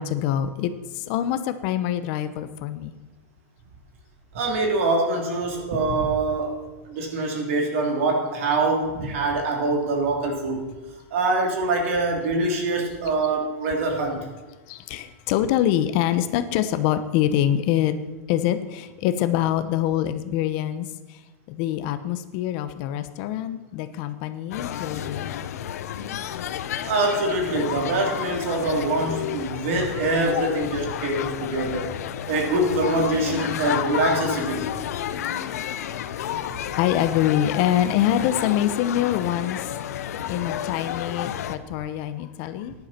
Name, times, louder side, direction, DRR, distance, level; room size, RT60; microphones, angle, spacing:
voice 1, 0.0-2.9 14.7-17.9 18.3-20.9 21.5-25.3 31.6-32.0 34.7-35.5 36.7-39.7 40.3-42.7, left 11 dB, 35° left, 11 dB, 0.8 m, -25 dB
voice 2, 4.3-6.5 6.8-10.7 11.1-14.2 26.8-31.9 32.3-34.7, right 2 dB, 55° right, 1 dB, 3.3 m, -24 dB
sound 1, 24.5-41.6, left 10 dB, 90° left, 0.8 m, -31 dB
15.0 x 10.5 x 4.4 m, 1.2 s
supercardioid pair, 180°, 8 cm